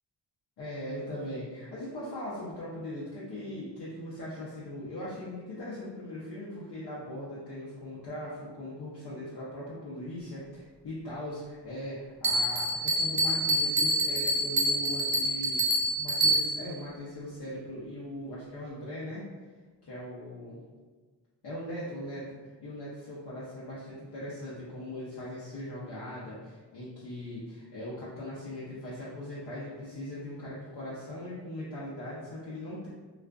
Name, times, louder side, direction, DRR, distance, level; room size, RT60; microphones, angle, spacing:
voice 1, 0.6-15.6 16.0-19.2 19.9-20.6 21.4-32.9, left 1 dB, 60° left, -8 dB, 0.7 m, -39 dB
Bell, 12.2-16.8, right 1 dB, 45° right, 0.4 m, -27 dB
2.4 x 2.4 x 2.2 m, 1.4 s
cardioid pair, 55°, 44 cm